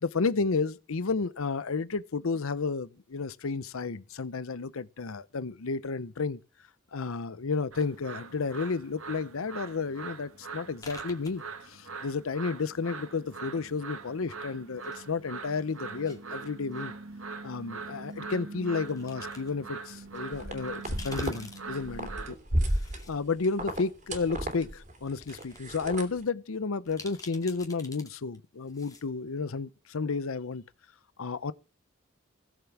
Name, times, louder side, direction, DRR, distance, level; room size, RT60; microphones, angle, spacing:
voice 1, 0.0-6.4 6.9-16.9 17.4-22.4 23.1-30.6 31.2-31.5, left 4 dB, 85° left, 0.7 m, -32 dB
sound 1, 7.7-22.3, right 4 dB, 90° right, 1.9 m, -42 dB
sound 2, 10.8-12.0 12.3-13.2 14.0-15.0 15.3-16.8 18.1-18.2 18.8-19.5 20.0-20.1 20.7-23.1 23.5-23.6 24.5-24.6 25.0-25.6 25.9-26.0 26.9-28.1 28.3-28.4 28.7-29.1, left 3 dB, 15° left, 2.3 m, -49 dB
sound 3, 20.3-21.4 21.7-26.2, right 1 dB, 35° right, 2.8 m, -32 dB
17.5 x 7.4 x 5.9 m
head